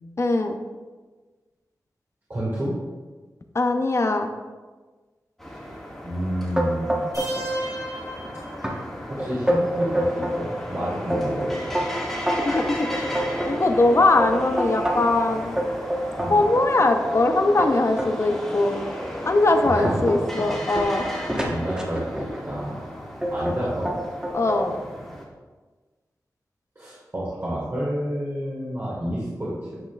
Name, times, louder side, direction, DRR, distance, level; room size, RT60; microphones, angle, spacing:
voice 1, 0.2-0.5 3.5-4.3 12.4-13.2 13.4-15.6 16.3-18.8 19.3-21.0 24.3-24.8, left 2 dB, 45° left, 5 dB, 0.6 m, -21 dB
voice 2, 2.3-2.7 6.0-7.0 9.1-11.8 16.2-16.4 19.6-20.0 21.3-23.0 23.3-23.9 26.8-29.8, equal, 40° right, -8 dB, 1.7 m, -29 dB
sound 1, 5.4-25.2, equal, 5° left, 1.8 m, -35 dB
sound 2, 6.6-7.5 7.8-8.3 8.6-8.8 9.2-10.4 10.9-15.2 15.6-18.1 18.7-18.9 19.4-22.4 23.2-23.6 23.9-24.6, equal, 15° right, 1.2 m, -27 dB
sound 3, 7.1-9.1, right 1 dB, 60° right, 1.8 m, -34 dB
8.6 x 5.3 x 2.4 m, 1.3 s
cardioid pair, 55°, 7 cm